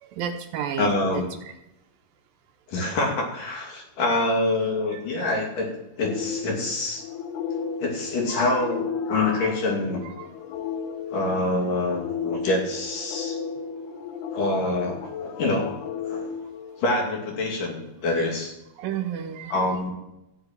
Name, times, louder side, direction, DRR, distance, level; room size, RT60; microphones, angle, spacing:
voice 1, 0.0-1.5 8.3-8.4 10.2-10.3 18.8-19.6, right 9 dB, 75° right, 6 dB, 2.3 m, -32 dB
voice 2, 0.8-1.3 2.7-5.7 6.0-7.0 7.8-10.1 11.1-13.4 14.3-15.7 16.1-16.3 16.8-18.5 19.5-19.9, left 2 dB, 60° left, 0 dB, 4.1 m, -26 dB
sound 1, 6.0-17.3, left 6 dB, 80° left, 2.9 m, -34 dB
14.0 x 7.9 x 8.9 m, 0.91 s
omnidirectional pair, 4.6 m